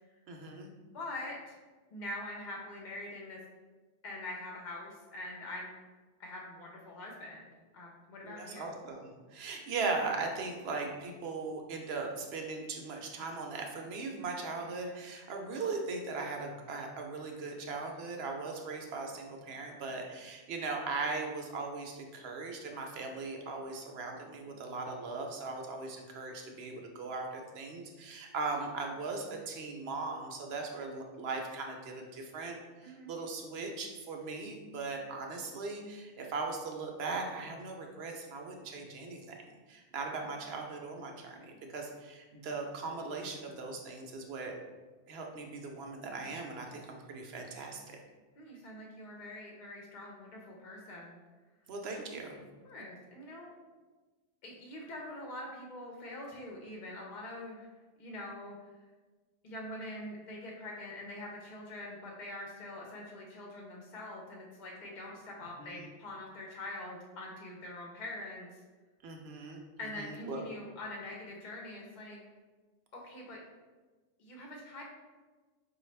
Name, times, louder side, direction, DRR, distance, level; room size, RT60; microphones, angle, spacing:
voice 1, 0.3-0.7 8.2-39.2 39.7-44.5 45.1-48.0 51.7-52.4 65.6-65.8 69.0-69.6 70.0-70.4, right 3 dB, 70° right, 2 dB, 0.8 m, -39 dB
voice 2, 0.9-1.6 1.9-3.4 4.0-5.7 6.2-8.7 32.8-33.1 48.4-51.2 52.6-53.5 54.4-57.7 58.0-58.6 59.4-68.6 69.8-72.2 72.9-73.4 74.2-74.8, left 1 dB, 50° left, -2 dB, 0.7 m, -44 dB
4.9 x 2.3 x 3.2 m, 1.3 s
omnidirectional pair, 1.2 m